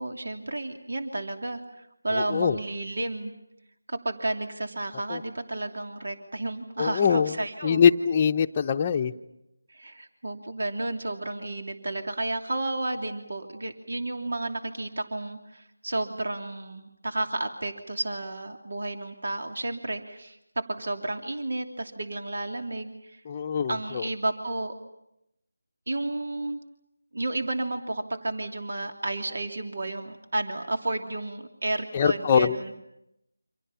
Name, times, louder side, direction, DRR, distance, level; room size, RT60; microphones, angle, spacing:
voice 1, 0.0-3.3 3.9-7.8 9.7-23.2 23.7-24.7 25.9-26.6 27.1-32.7, right 2 dB, 65° right, 4 dB, 3.0 m, -32 dB
voice 2, 2.1-2.6 5.1-5.2 6.8-7.4 7.6-9.1 23.3-24.0 31.9-32.6, left 7 dB, 25° left, 5 dB, 0.9 m, -23 dB
29.5 x 26.5 x 5.8 m, 0.85 s
figure-of-eight pair, 165°, 0 cm